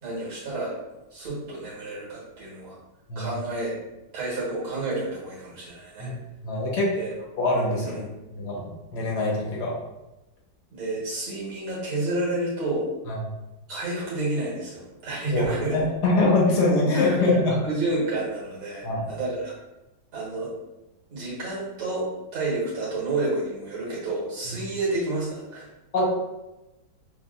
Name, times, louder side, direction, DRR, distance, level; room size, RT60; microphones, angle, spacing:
voice 1, 0.0-0.8 1.1-2.8 3.2-3.7 4.1-6.1 7.0-7.1 7.8-7.9 10.7-12.9 13.7-15.8 16.9-17.2 17.5-19.5 20.1-20.5 21.1-25.7, right 2 dB, 80° right, -5 dB, 2.3 m, -30 dB
voice 2, 6.4-6.9 7.4-8.0 8.3-9.7 13.1-13.2 15.3-17.5 18.8-19.1 25.9-26.0, left 2 dB, 60° left, -3 dB, 1.4 m, -23 dB
6.5 x 2.4 x 2.3 m, 0.99 s
omnidirectional pair, 2.1 m